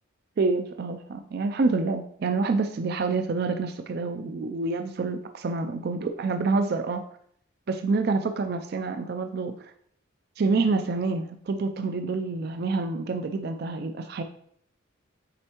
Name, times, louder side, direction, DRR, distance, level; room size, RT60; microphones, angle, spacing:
voice 1, 0.4-7.0 7.7-9.7 10.4-14.2, right 3 dB, 50° right, 7 dB, 0.4 m, -27 dB
7.5 x 4.4 x 2.9 m, 0.67 s
head